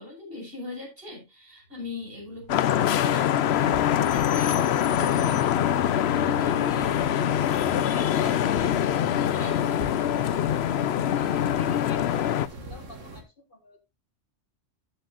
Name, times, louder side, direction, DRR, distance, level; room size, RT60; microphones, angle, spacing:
voice 1, 0.0-10.1, left 3 dB, 50° right, 0 dB, 5.6 m, -40 dB
Engine, 1.6-9.6, left 1 dB, 65° right, 3.8 m, -47 dB
Vehicle horn car horn honking / Traffic noise roadway noise, 2.5-12.5, left 10 dB, 65° left, 0.8 m, -24 dB
sound 1, 3.5-13.2, right 1 dB, 90° right, 2.4 m, -42 dB
voice 2, 11.2-13.8, left 2 dB, 45° left, 7 dB, 1.6 m, -47 dB
15.0 x 6.8 x 2.5 m, 0.24 s
omnidirectional pair, 1.3 m